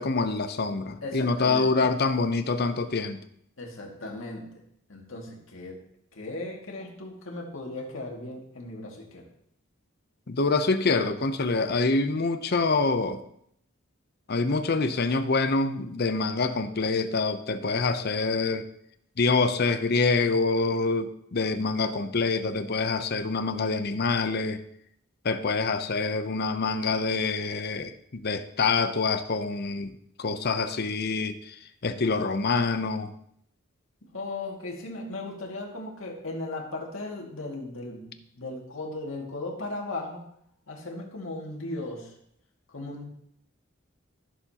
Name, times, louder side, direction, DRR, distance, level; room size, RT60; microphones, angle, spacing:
voice 1, 0.0-3.2 10.3-13.2 14.3-18.6 19.2-24.6 25.2-31.6 31.8-33.1, left 3 dB, 55° left, 10 dB, 0.7 m, -26 dB
voice 2, 1.0-1.7 3.6-4.6 4.9-5.8 6.1-9.3 34.0-40.2 40.7-42.1 42.7-43.1, left 2 dB, 80° left, -1 dB, 2.2 m, -37 dB
15.0 x 6.9 x 2.9 m, 0.72 s
head